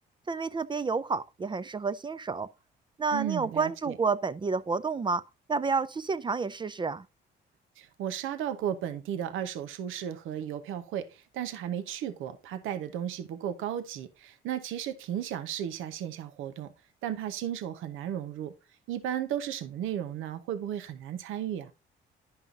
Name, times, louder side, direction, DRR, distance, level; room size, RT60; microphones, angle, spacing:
voice 1, 0.3-2.5 3.0-5.2 5.5-7.0, right 4 dB, 25° right, 0.3 m, -30 dB
voice 2, 3.1-4.0 7.8-16.7 17.0-18.5 18.9-21.7, right 10 dB, 85° right, 0.7 m, -34 dB
10.5 x 5.5 x 2.4 m
cardioid pair, 90°, 20 cm